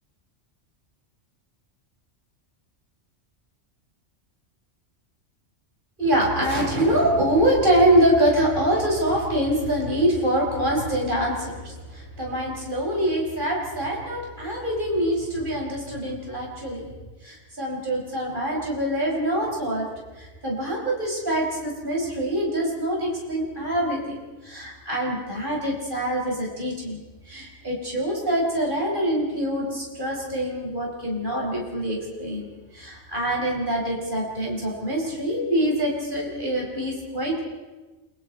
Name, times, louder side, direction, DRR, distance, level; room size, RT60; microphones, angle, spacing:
voice 1, 6.0-16.9 17.2-19.9 20.2-37.4, right 1 dB, 45° right, -2 dB, 5.6 m, -25 dB
29.0 x 23.5 x 4.5 m, 1.2 s
omnidirectional pair, 1.2 m